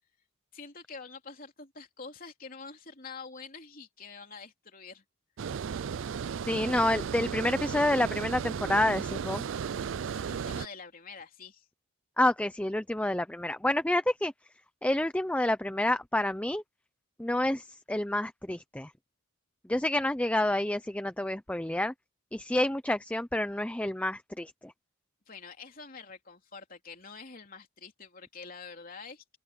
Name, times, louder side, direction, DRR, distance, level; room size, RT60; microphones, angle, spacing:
voice 1, 0.5-5.0 10.1-11.7 25.3-29.4, left 4 dB, 40° left, 3.5 m, -46 dB
Water, 5.4-10.7, right 7 dB, 60° right, 0.4 m, -35 dB
voice 2, 6.5-9.4 12.2-14.3 14.8-16.6 17.2-18.9 19.7-21.9 22.3-24.7, left 1 dB, 5° left, 0.5 m, -28 dB
open air
head